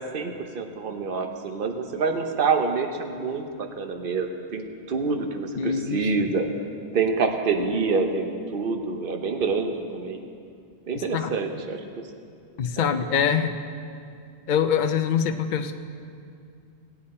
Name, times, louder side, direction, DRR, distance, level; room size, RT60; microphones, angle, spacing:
voice 1, 0.0-6.5 6.9-10.2 10.9-11.8 12.8-13.0, right 4 dB, 55° right, 5 dB, 1.0 m, -27 dB
voice 2, 5.6-6.1 11.1-11.3 12.6-13.6 14.5-15.7, left 7 dB, 50° left, 8 dB, 0.6 m, -24 dB
17.0 x 8.5 x 4.3 m, 2.4 s
omnidirectional pair, 1.2 m